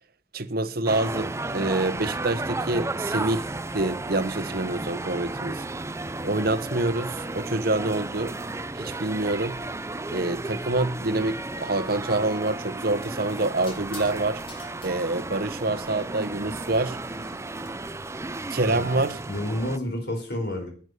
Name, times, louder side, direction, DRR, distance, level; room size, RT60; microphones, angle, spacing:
voice 1, 0.3-3.5 3.7-5.6 6.2-8.4 8.7-9.6 10.1-14.4 14.8-17.0 18.5-19.2, right 2 dB, 55° right, 1.2 m, -26 dB
sound 1, 0.9-19.8, right 2 dB, 15° right, 0.6 m, -33 dB
sound 2, 13.7-14.2 14.5-14.9 17.1-17.7, left 2 dB, 30° left, 4.5 m, -45 dB
voice 2, 18.6-19.0 19.3-20.7, left 1 dB, 60° left, 4.6 m, -30 dB
11.5 x 9.3 x 8.3 m
head